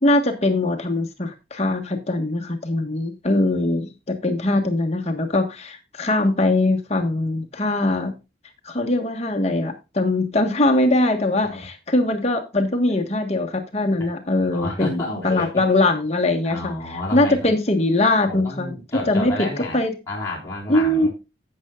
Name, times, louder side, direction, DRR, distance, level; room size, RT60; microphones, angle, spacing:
voice 1, 0.0-8.1 8.6-18.7 19.1-19.5 19.7-19.9 20.7-21.1, left 2 dB, 35° left, 4 dB, 1.4 m, -21 dB
voice 2, 14.5-15.6 16.4-17.5 18.2-19.8 20.1-21.1, left 2 dB, 15° left, -6 dB, 4.5 m, -30 dB
15.5 x 6.8 x 2.4 m, 0.27 s
head